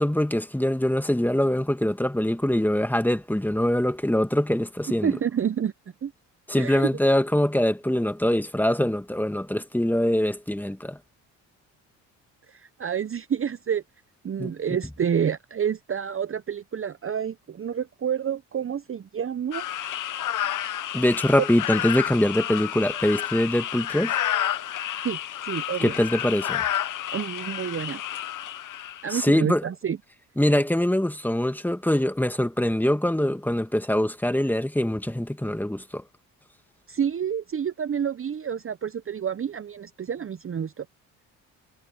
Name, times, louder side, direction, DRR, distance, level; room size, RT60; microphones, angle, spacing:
voice 1, 0.0-5.1 6.5-11.0 14.4-14.5 20.9-24.2 25.8-26.6 29.1-29.6 30.4-36.0, left 1 dB, 5° left, 2.1 m, -23 dB
voice 2, 5.0-5.7 6.0-6.1 6.6-6.9 12.5-13.8 14.2-19.6 25.0-25.2 25.4-26.0 27.1-28.0 29.0-30.0 36.9-40.9, right 8 dB, 35° right, 0.9 m, -28 dB
sound 1, 19.5-29.2, left 11 dB, 50° left, 1.1 m, -30 dB
hypercardioid pair, 60°, 40 cm